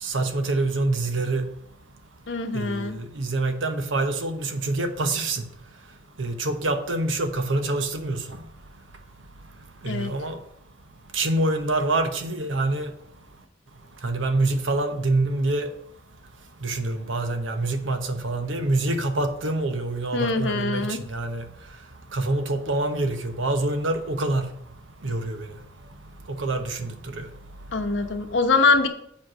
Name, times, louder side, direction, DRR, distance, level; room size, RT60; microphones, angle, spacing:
voice 1, 0.0-1.5 2.5-5.4 6.2-8.4 9.8-10.4 11.1-12.9 14.0-15.7 16.6-21.4 22.1-24.5 25.0-25.5 26.3-27.3, right 2 dB, 80° right, 1.0 m, -26 dB
voice 2, 2.3-3.0 9.8-10.1 20.1-21.0 27.7-28.9, left 4 dB, 70° left, 1.0 m, -23 dB
7.3 x 4.7 x 6.2 m
head